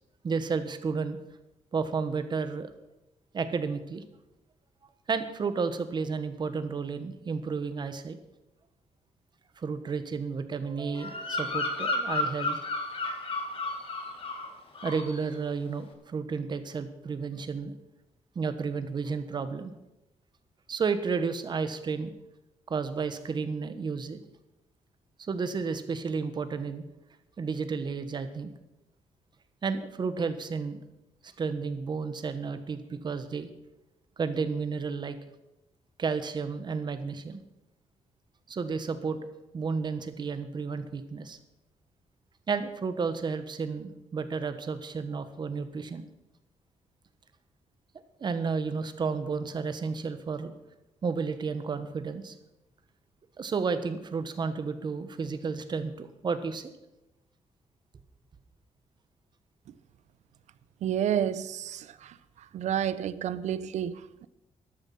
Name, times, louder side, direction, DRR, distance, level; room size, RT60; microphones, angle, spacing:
voice 1, 0.2-1.2 1.7-2.7 3.3-4.0 5.1-8.2 9.6-12.6 14.8-17.7 18.3-19.7 20.7-22.1 22.7-24.2 25.2-26.8 27.4-28.5 29.6-30.8 31.2-33.5 34.2-35.2 36.0-37.4 38.5-39.2 39.5-41.4 42.5-46.1 48.2-50.5 51.0-52.3 53.4-56.7, right 5 dB, 40° right, 1.3 m, -32 dB
Bird vocalization bird call bird song, 11.0-14.5 14.8-15.2, left 2 dB, 50° left, 2.2 m, -32 dB
voice 2, 60.8-62.2 62.5-64.3, right 10 dB, 80° right, 0.7 m, -30 dB
13.5 x 12.0 x 5.6 m
cardioid pair, 135°, 12 cm